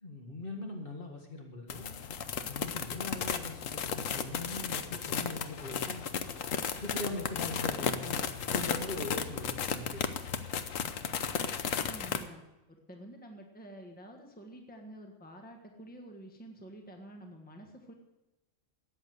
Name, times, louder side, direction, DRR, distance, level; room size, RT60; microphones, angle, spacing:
voice 1, 0.0-1.9 2.5-6.1 6.8-10.0 10.3-10.8, left 2 dB, 40° left, 2 dB, 2.2 m, -41 dB
sound 1, 1.7-12.2, left 7 dB, 80° left, 1.2 m, -34 dB
voice 2, 11.7-12.4 12.7-17.9, right 1 dB, 5° left, 3 dB, 1.5 m, -49 dB
13.5 x 9.0 x 7.8 m, 0.98 s
omnidirectional pair, 1.4 m